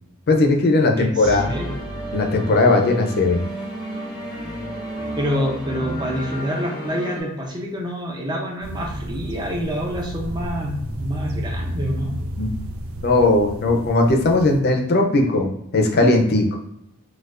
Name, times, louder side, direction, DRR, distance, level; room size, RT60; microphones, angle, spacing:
voice 1, 0.3-1.5 2.1-3.4 12.4-12.5 13.0-16.6, left 2 dB, 50° left, 3 dB, 0.5 m, -18 dB
voice 2, 1.0-1.7 5.2-12.2, equal, 20° right, 0 dB, 0.6 m, -27 dB
sound 1, 1.2-7.2, right 1 dB, 40° right, 1.3 m, -32 dB
sound 2, 8.6-14.6, equal, 75° right, 0.4 m, -32 dB
4.3 x 2.3 x 2.5 m, 0.78 s
head